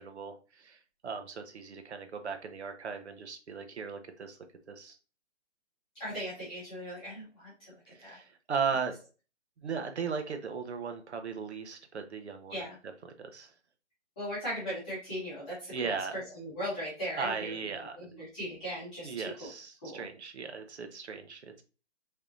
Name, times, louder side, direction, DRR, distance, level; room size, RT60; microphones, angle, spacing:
voice 1, 0.0-4.4 4.7-5.0 7.9-8.9 9.6-12.7 13.0-13.5 15.7-16.2 17.1-18.2 19.0-21.6, right 5 dB, 65° right, 7 dB, 0.9 m, -37 dB
voice 2, 6.0-8.2 12.5-12.8 14.2-15.9 16.3-17.6 18.0-19.5 19.8-20.0, equal, 5° left, -11 dB, 0.9 m, -38 dB
4.3 x 3.5 x 2.5 m, 0.34 s
hypercardioid pair, 180°, 36 cm